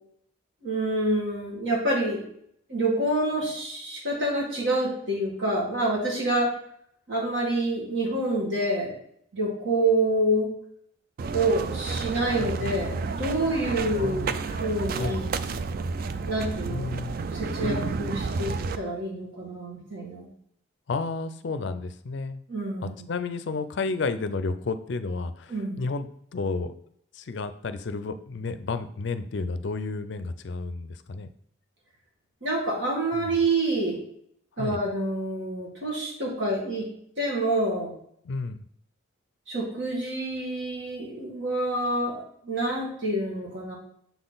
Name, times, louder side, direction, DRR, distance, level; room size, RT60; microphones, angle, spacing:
voice 1, 0.6-2.2 2.7-6.5 7.1-8.9 9.3-10.5 11.3-15.2 16.3-16.9 17.3-20.3 22.5-22.9 25.5-25.8 32.4-34.0 34.6-36.8 37.2-37.9 39.5-43.7, right 1 dB, 60° right, -3 dB, 1.9 m, -27 dB
sound 1, 11.2-18.8, right 4 dB, 45° right, 0.3 m, -31 dB
voice 2, 14.0-14.3 15.0-15.2 16.7-17.2 20.9-22.4 22.8-26.7 27.1-31.3 33.2-33.3 34.6-34.8 38.2-38.6, left 3 dB, 55° left, 11 dB, 0.4 m, -31 dB
7.0 x 3.9 x 3.9 m, 0.69 s
head